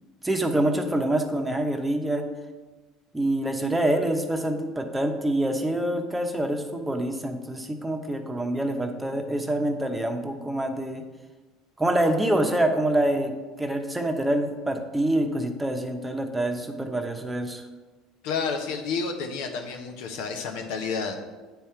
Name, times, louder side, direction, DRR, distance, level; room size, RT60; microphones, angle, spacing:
voice 1, 0.2-2.3 3.1-11.0 11.8-17.6, right 1 dB, 10° right, 4 dB, 0.9 m, -26 dB
voice 2, 18.2-21.2, left 5 dB, 80° left, 4 dB, 0.9 m, -30 dB
9.0 x 3.5 x 4.4 m, 1.3 s
supercardioid pair, 85°, 0 cm